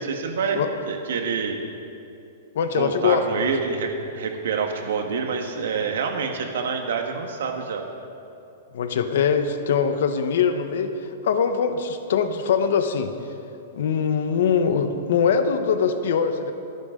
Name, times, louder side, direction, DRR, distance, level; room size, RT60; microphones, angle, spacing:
voice 1, 0.0-1.6 2.7-7.8, right 5 dB, 75° right, 4 dB, 1.5 m, -27 dB
voice 2, 2.5-3.2 8.7-13.1 13.7-16.5, left 6 dB, 65° left, 8 dB, 1.1 m, -22 dB
28.0 x 9.6 x 3.8 m, 2.7 s
supercardioid pair, 170°, 0 cm